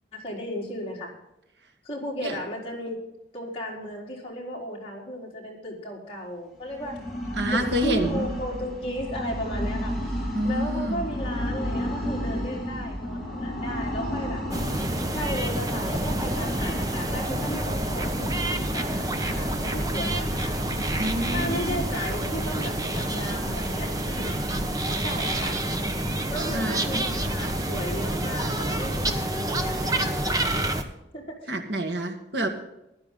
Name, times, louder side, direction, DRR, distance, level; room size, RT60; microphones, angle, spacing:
voice 1, 0.1-1.1 1.8-3.0 3.3-6.9 7.5-14.4 15.1-20.5 21.3-24.3 25.0-25.6 26.3-30.8 31.1-31.2, equal, 30° left, -3 dB, 4.3 m, -35 dB
sound 1, 6.6-25.4, equal, ahead, 5.1 m, -33 dB
voice 2, 7.4-8.3 10.3-11.0 21.0-21.9 26.5-27.1 31.5-32.5, right 1 dB, 80° right, 5 dB, 1.9 m, -28 dB
sound 2, 14.5-30.8, right 1 dB, 20° right, 1.1 m, -28 dB
15.5 x 12.5 x 3.8 m, 0.87 s
head